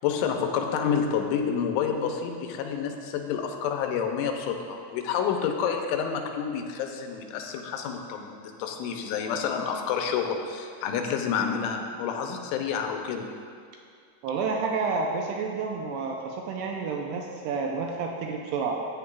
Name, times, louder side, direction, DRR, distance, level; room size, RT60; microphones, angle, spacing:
voice 1, 0.0-13.3, left 7 dB, 90° left, 3 dB, 3.1 m, -29 dB
voice 2, 14.2-18.8, right 4 dB, 85° right, 1 dB, 2.4 m, -30 dB
14.5 x 9.5 x 2.4 m, 2.3 s
omnidirectional pair, 5.4 m